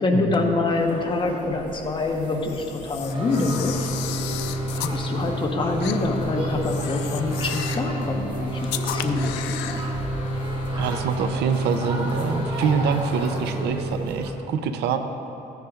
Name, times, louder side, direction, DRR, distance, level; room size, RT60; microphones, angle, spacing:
voice 1, 0.0-3.9 4.8-9.8, left 3 dB, 30° left, 2 dB, 1.1 m, -26 dB
sound 1, 0.7-14.3, right 1 dB, 30° right, 1.3 m, -35 dB
Camera, 2.4-5.0 5.8-6.0 6.6-7.9 8.6-9.9, left 12 dB, 90° left, 0.5 m, -34 dB
sound 2, 3.0-14.3, equal, 50° left, 1.8 m, -29 dB
voice 2, 10.8-15.0, right 6 dB, 80° right, 8 dB, 0.7 m, -25 dB
15.5 x 9.4 x 2.5 m, 2.9 s
cardioid pair, 110°, 17 cm